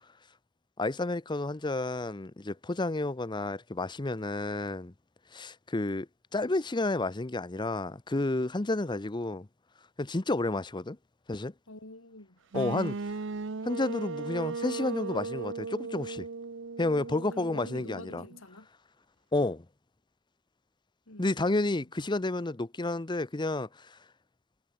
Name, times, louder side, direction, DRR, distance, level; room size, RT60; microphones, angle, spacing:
voice 1, 0.8-4.9 5.3-6.1 6.3-9.5 10.0-11.0 11.3-11.5 12.5-13.0 13.6-16.3 16.8-18.2 19.3-19.6 21.2-24.0, left 2 dB, 20° left, 0.7 m, -31 dB
voice 2, 11.7-12.4 17.1-18.7 21.1-21.8, left 2 dB, 65° left, 3.5 m, -48 dB
sound 1, 12.5-18.4, right 4 dB, 60° right, 0.8 m, -37 dB
head